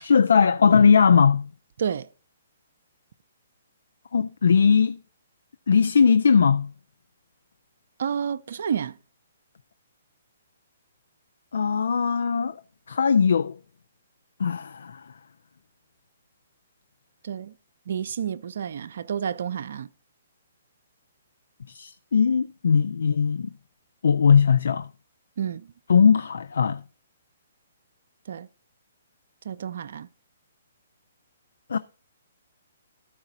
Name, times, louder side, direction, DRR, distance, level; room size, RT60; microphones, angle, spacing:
voice 1, 0.0-1.5 4.1-5.0 5.7-6.7 11.5-12.6 12.9-13.6 14.4-15.0 21.7-23.5 24.0-24.9 25.9-26.8 31.7-31.8, left 6 dB, 75° left, 0.4 m, -19 dB
voice 2, 8.0-9.0 17.2-17.5 17.9-19.9 25.4-25.7 28.3-28.5 29.4-30.1, right 8 dB, 65° right, 0.4 m, -30 dB
13.0 x 4.8 x 4.0 m
hypercardioid pair, 140°, 0 cm